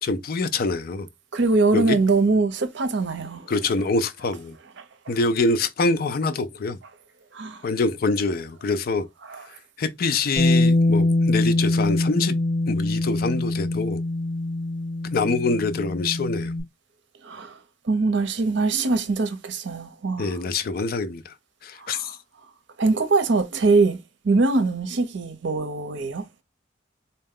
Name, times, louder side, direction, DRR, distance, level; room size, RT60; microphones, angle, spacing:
voice 1, 0.0-1.1 1.7-2.0 3.5-4.6 5.1-6.8 7.6-9.1 9.8-12.3 12.7-14.0 15.1-16.5 20.2-21.3 21.6-22.2, left 3 dB, 50° left, 0.4 m, -25 dB
voice 2, 1.3-3.5 4.8-5.1 7.3-7.7 9.3-9.4 17.2-17.6 17.8-20.4 21.8-22.1 22.8-24.0 24.2-26.2, right 3 dB, 65° right, 0.7 m, -23 dB
Bass guitar, 10.4-16.6, left 2 dB, 25° left, 1.4 m, -23 dB
4.1 x 2.2 x 3.6 m
head